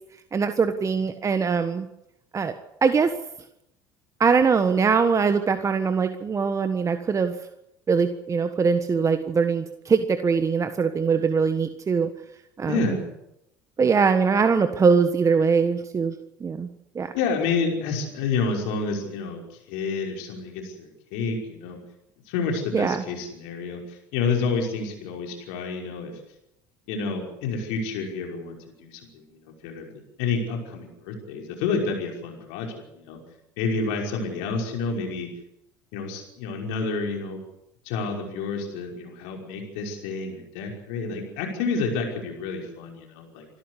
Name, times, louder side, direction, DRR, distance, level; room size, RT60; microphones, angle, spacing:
voice 1, 0.3-1.9 2.3-2.5 2.8-3.1 4.2-7.3 7.9-12.1 12.6-13.0 13.8-16.1 16.4-16.7 16.9-17.1 22.7-23.0, right 5 dB, 30° right, 8 dB, 1.4 m, -22 dB
voice 2, 12.6-13.1 17.1-19.4 19.7-21.8 22.3-26.1 26.9-33.2 33.6-35.3 35.9-37.4 37.9-43.5, left 4 dB, 70° left, 1 dB, 5.7 m, -29 dB
26.5 x 13.0 x 8.3 m, 0.84 s
hypercardioid pair, 75°, 10 cm